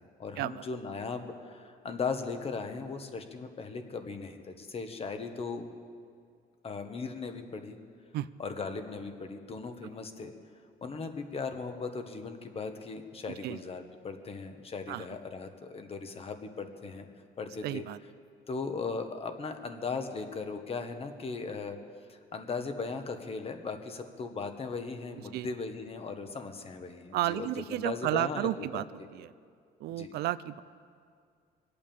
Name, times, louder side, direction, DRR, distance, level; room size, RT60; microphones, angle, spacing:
voice 1, 0.2-5.7 6.6-7.8 8.4-10.3 10.8-17.1 17.4-17.8 18.5-21.8 22.1-28.9 29.9-30.1, left 4 dB, 35° left, 7 dB, 1.5 m, -38 dB
voice 2, 17.6-18.0 25.3-25.5 27.1-28.8 29.1-29.3 29.8-30.6, right 14 dB, 75° right, 16 dB, 0.5 m, -32 dB
23.0 x 8.7 x 7.1 m, 2.2 s
cardioid pair, 110°, 17 cm